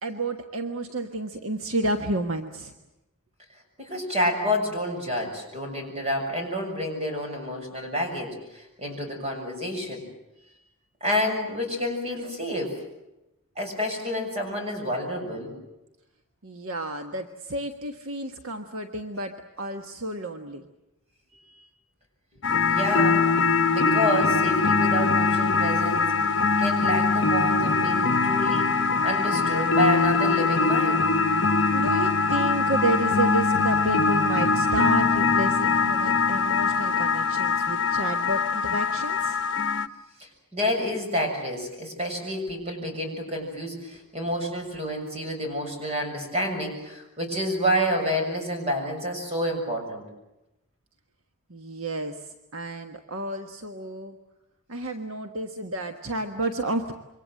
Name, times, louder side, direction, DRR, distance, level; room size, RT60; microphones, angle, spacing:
voice 1, 0.0-2.7 10.4-10.5 16.4-20.7 21.3-21.7 31.7-39.4 51.5-54.2 54.7-56.9, right 1 dB, 65° right, 5 dB, 1.4 m, -31 dB
voice 2, 3.8-10.1 11.0-12.7 13.6-15.5 22.3-23.3 23.7-31.1 40.2-50.0, equal, 30° right, 3 dB, 7.1 m, -29 dB
sound 1, 22.4-39.9, left 4 dB, 55° left, 1.1 m, -22 dB
27.0 x 24.0 x 7.7 m, 0.94 s
head